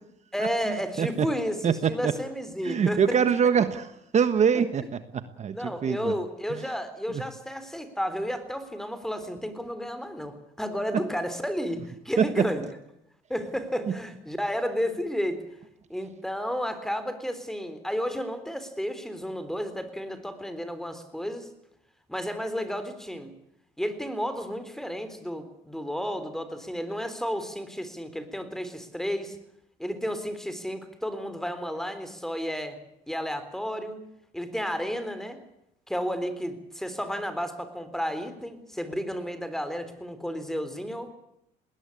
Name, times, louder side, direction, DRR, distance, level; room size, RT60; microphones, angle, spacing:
voice 1, 0.3-3.2 4.5-4.6 5.5-12.7 13.3-15.4 15.9-21.5 22.1-23.3 23.8-29.4 29.8-32.8 33.1-34.0 34.3-35.4 35.9-41.1, equal, ahead, 11 dB, 3.7 m, -32 dB
voice 2, 1.6-2.1 2.6-3.9 4.1-5.0 5.4-5.6 5.8-6.1 6.5-6.6 7.1-7.2 12.2-12.3, right 7 dB, 45° right, 11 dB, 1.4 m, -23 dB
20.0 x 18.5 x 8.5 m, 0.83 s
cardioid pair, 110°, 17 cm